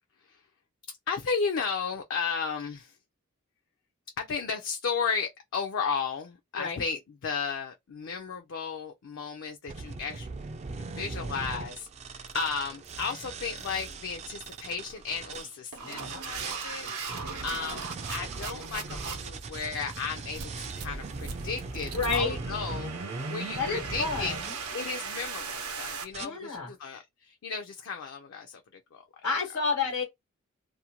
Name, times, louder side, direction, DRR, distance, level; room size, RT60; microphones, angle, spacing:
voice 1, 1.1-3.0 4.2-10.3 10.8-16.9 17.4-17.8 18.1-22.9 23.3-24.3 24.7-29.0, left 5 dB, 60° left, 0.4 m, -34 dB
sound 1, 9.7-15.5 16.0-24.7 25.4-25.7 26.1-26.3, right 3 dB, 30° right, 0.3 m, -39 dB
sound 2, 12.3-12.5 12.8-13.1 13.6-13.9 14.4-14.7 15.3-26.0, right 5 dB, 85° right, 0.6 m, -39 dB
voice 2, 15.8-16.2 21.9-22.4 23.6-24.5 26.2-26.7 29.2-30.0, left 4 dB, 90° left, 1.1 m, -30 dB
2.5 x 2.1 x 2.8 m
head